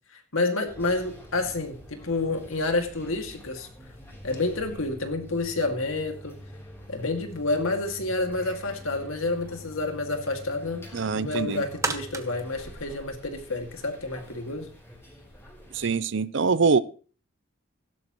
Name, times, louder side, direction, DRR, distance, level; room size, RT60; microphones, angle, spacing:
voice 1, 0.1-3.7 4.2-6.4 6.9-10.9 11.1-14.7, left 2 dB, 80° left, 5 dB, 2.3 m, -29 dB
sound 1, 0.7-16.0, equal, 10° left, 3.6 m, -46 dB
voice 2, 10.9-11.6 15.7-16.8, right 5 dB, 60° right, 17 dB, 0.6 m, -24 dB
sound 2, 11.1-13.7 14.2-14.3, right 3 dB, 15° right, 0.9 m, -35 dB
16.5 x 11.5 x 3.1 m, 0.38 s
head